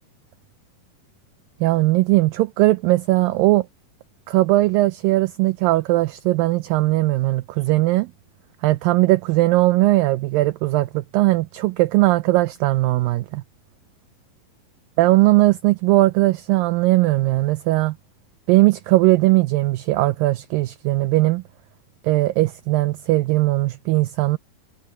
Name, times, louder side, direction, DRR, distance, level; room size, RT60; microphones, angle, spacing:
voice 1, 1.6-3.7 4.3-8.1 8.6-13.4 15.0-18.0 18.5-21.4 22.0-24.4, right 19 dB, 80° right, 2.1 m, -19 dB
omnidirectional pair, 4.3 m